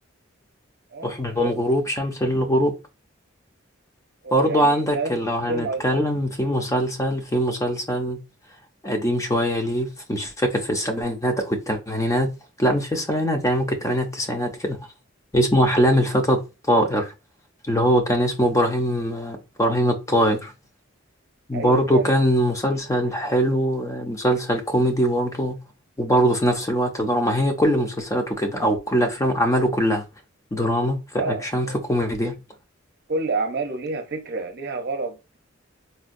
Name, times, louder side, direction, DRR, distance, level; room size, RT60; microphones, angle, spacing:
voice 1, 1.0-2.7 4.3-8.2 8.8-12.3 12.6-14.8 15.3-16.4 16.7-17.1 17.7-20.5 21.5-25.6 26.0-30.0 30.5-32.4, equal, 15° left, 0.6 m, -22 dB
voice 2, 4.2-5.2 5.5-6.1 21.5-22.1 31.2-31.8 33.1-35.4, right 3 dB, 55° right, 0.7 m, -29 dB
4.3 x 2.2 x 2.5 m
head